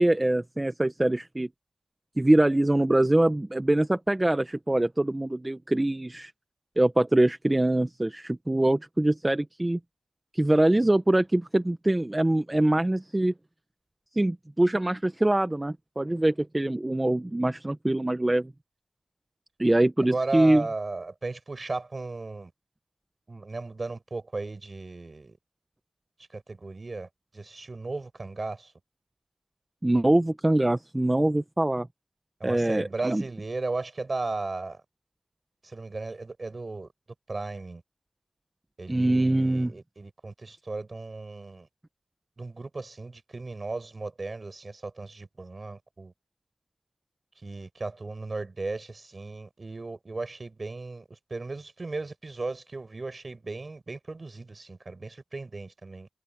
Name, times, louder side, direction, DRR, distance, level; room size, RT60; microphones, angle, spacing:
voice 1, 0.0-1.5 2.2-6.3 6.8-9.8 10.3-13.3 14.1-18.5 19.6-20.7 29.8-31.9 32.4-33.2 38.9-39.7, right 1 dB, 20° right, 0.9 m, -24 dB
voice 2, 20.1-22.5 23.3-25.4 26.3-27.1 27.3-28.7 32.4-34.8 35.6-36.9 37.3-37.8 38.8-41.7 42.4-46.1 47.4-51.0 51.3-56.1, right 3 dB, 45° right, 5.1 m, -35 dB
wide cardioid pair, 90°, 0 cm